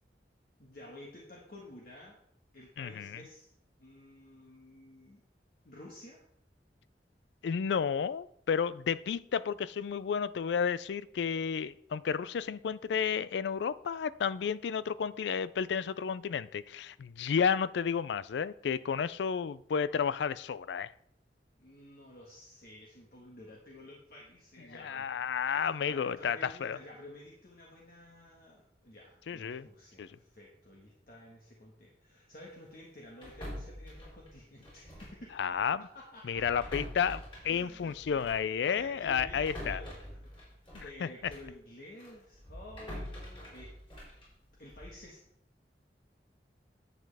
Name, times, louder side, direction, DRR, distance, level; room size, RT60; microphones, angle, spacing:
voice 1, 0.6-2.2 2.5-3.5 3.8-5.2 5.6-6.2 21.6-25.1 25.5-35.4 35.9-36.6 37.5-38.2 38.6-43.7 44.6-45.2, left 1 dB, 55° left, 1.5 m, -51 dB
voice 2, 2.8-3.2 7.4-20.9 24.8-26.8 29.3-29.7 30.0-30.1 35.4-35.8 36.3-39.8 40.7-41.1, left 7 dB, 80° left, 0.4 m, -32 dB
sound 1, 33.2-35.3 35.5-35.7 36.3-41.6 42.0-45.1, equal, 30° left, 3.8 m, -45 dB
10.5 x 7.6 x 3.5 m
head